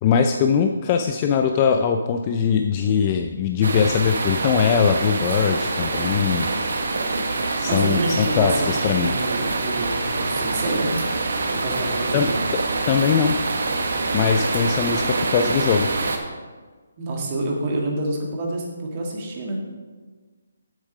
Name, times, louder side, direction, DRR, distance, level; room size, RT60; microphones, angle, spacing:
voice 1, 0.0-6.5 7.6-9.1 12.1-12.3 12.9-13.4 14.1-15.9, left 7 dB, 25° left, 5 dB, 0.4 m, -21 dB
sound 1, 3.6-16.2, right 3 dB, 75° right, 1.3 m, -25 dB
voice 2, 7.4-10.9 11.5-12.4 17.0-19.6, right 2 dB, 30° right, 0 dB, 1.8 m, -27 dB
8.1 x 7.2 x 5.5 m, 1.4 s
hypercardioid pair, 165°, 0 cm